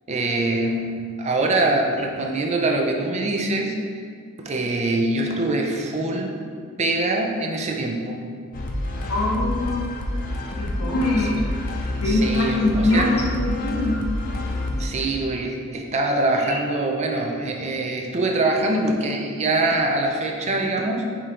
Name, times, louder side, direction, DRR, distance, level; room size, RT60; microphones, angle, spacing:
voice 1, 0.1-4.1 4.4-6.3 6.8-8.2 11.2-11.3 12.0-13.1 14.8-21.2, right 2 dB, 30° right, 1 dB, 0.4 m, -24 dB
sound 1, 8.5-14.9, left 1 dB, 40° left, 0.5 m, -28 dB
voice 2, 9.1-10.0 10.6-11.5 12.0-14.0 16.4-16.6, left 2 dB, 90° left, -4 dB, 1.0 m, -23 dB
4.9 x 3.7 x 2.9 m, 2.2 s
head